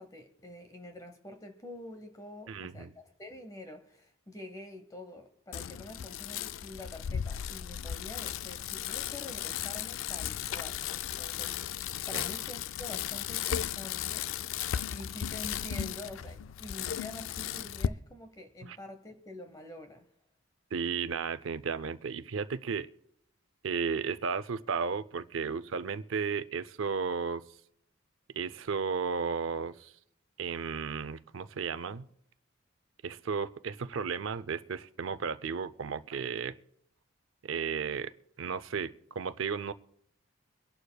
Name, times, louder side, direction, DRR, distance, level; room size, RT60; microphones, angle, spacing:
voice 1, 0.0-20.1, left 1 dB, 20° left, 6 dB, 0.9 m, -47 dB
voice 2, 2.5-2.9 12.1-12.3 18.6-18.8 20.7-22.9 23.6-27.5 28.3-29.9 30.4-32.1 33.0-36.5 37.4-38.1 38.4-39.7, right 5 dB, 80° right, 14 dB, 0.5 m, -34 dB
Bicycle, 5.5-17.9, left 9 dB, 80° left, 0.3 m, -36 dB
24.0 x 11.5 x 2.3 m, 0.73 s
head